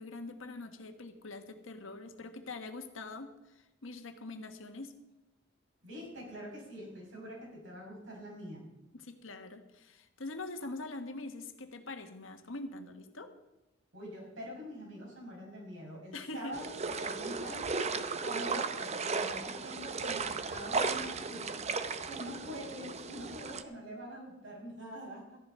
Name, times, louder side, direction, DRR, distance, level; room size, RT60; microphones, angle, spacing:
voice 1, 0.0-4.9 8.9-13.3 16.1-16.5, left 2 dB, 85° left, 6 dB, 1.5 m, -44 dB
voice 2, 5.8-8.6 13.9-25.4, equal, 75° right, -2 dB, 5.8 m, -45 dB
sound 1, 16.5-23.6, right 4 dB, 35° right, 0.7 m, -35 dB
13.5 x 11.0 x 5.5 m, 1.0 s
head